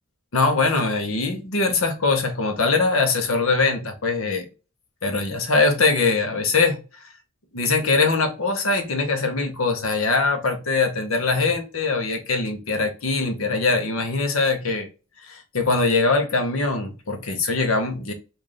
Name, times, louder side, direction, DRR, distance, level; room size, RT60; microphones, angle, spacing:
voice 1, 0.3-4.5 5.0-6.8 7.5-14.9 15.2-18.1, left 3 dB, 70° left, 0.9 m, -22 dB
3.2 x 2.6 x 3.8 m
head